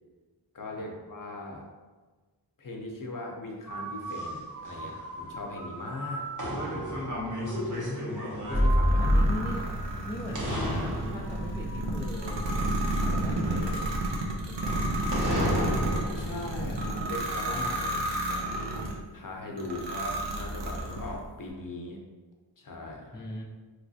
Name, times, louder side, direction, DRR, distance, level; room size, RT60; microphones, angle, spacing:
voice 1, 0.5-1.7 2.6-6.3 7.4-7.6 8.5-9.1 16.1-18.4 19.1-22.0 22.6-23.3, left 2 dB, 50° left, 0 dB, 0.6 m, -39 dB
sound 1, 3.7-10.1 10.3-12.9 13.3-16.5, equal, 45° right, 0.9 m, -31 dB
voice 2, 7.3-8.3 8.9-9.6 10.1-13.9 14.4-15.0 23.1-23.4, left 1 dB, 10° left, -1 dB, 0.3 m, -39 dB
sound 2, 8.7-19.0 19.6-21.2, right 1 dB, 75° right, 0.6 m, -31 dB
3.2 x 3.0 x 2.6 m, 1.3 s
wide cardioid pair, 85°, 43 cm